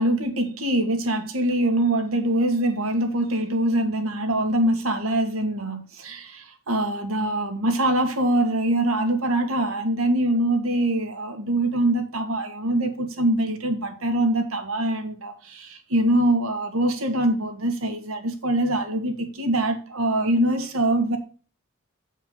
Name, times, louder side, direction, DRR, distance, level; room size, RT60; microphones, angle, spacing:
voice 1, 0.0-21.2, right 1 dB, 80° right, 1.6 m, -23 dB
7.8 x 4.6 x 5.6 m
head